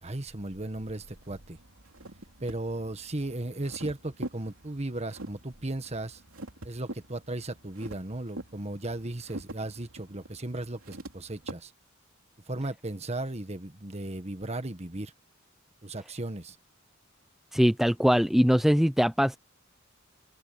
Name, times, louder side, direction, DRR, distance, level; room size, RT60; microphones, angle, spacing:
voice 1, 0.0-1.6 2.4-6.2 6.6-11.7 12.5-15.1 15.8-16.5, right 2 dB, 30° right, 1.6 m, -36 dB
sound 1, 0.8-11.5, right 1 dB, 90° right, 3.2 m, -45 dB
voice 2, 17.5-19.4, equal, ahead, 0.7 m, -22 dB
head